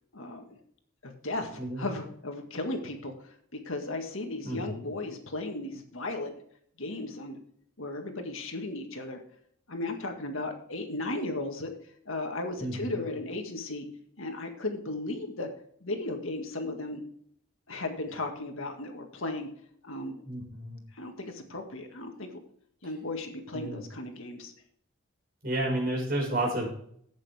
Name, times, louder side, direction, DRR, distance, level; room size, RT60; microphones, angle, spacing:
voice 1, 0.1-0.6 1.0-6.3 6.8-7.4 7.8-9.2 9.7-11.7 12.1-13.9 14.2-15.5 15.8-17.0 17.7-19.5 19.8-20.2 21.0-22.4 22.8-24.5, left 2 dB, 70° left, 4 dB, 1.8 m, -35 dB
voice 2, 4.4-4.8 12.6-13.1 20.2-20.8 23.5-23.8 25.4-26.7, right 1 dB, 45° right, -1 dB, 5.3 m, -31 dB
12.5 x 8.5 x 3.5 m, 0.65 s
head